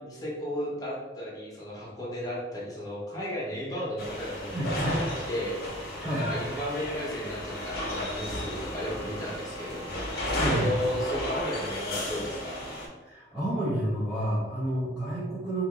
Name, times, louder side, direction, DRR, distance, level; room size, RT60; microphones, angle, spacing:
voice 1, 0.0-5.0 5.3-10.1 10.5-12.6, equal, 20° left, -5 dB, 0.8 m, -34 dB
sound 1, 4.0-12.9, left 1 dB, 55° left, 0.7 m, -34 dB
voice 2, 4.5-5.0 6.0-6.3 10.4-10.7 13.0-15.6, right 1 dB, 5° right, -8 dB, 0.6 m, -29 dB
2.8 x 2.5 x 3.6 m, 1.2 s
head